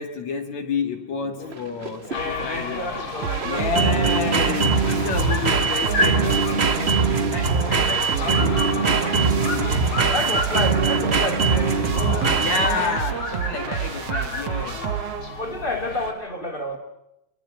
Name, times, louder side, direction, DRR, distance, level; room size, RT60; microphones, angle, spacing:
voice 1, 0.0-3.0 3.4-7.0 7.3-10.2 12.4-14.9, left 5 dB, 70° left, 3 dB, 3.4 m, -30 dB
sound 1, 1.5-13.1, right 4 dB, 45° right, 0.8 m, -22 dB
sound 2, 2.1-16.1, left 3 dB, 45° left, 4.0 m, -32 dB
voice 2, 2.1-4.1 10.1-12.4 15.4-16.8, left 1 dB, 20° left, 3 dB, 2.9 m, -30 dB
sound 3, 3.2-15.6, right 10 dB, 65° right, 2.0 m, -29 dB
26.0 x 24.0 x 6.2 m, 0.88 s
omnidirectional pair, 3.3 m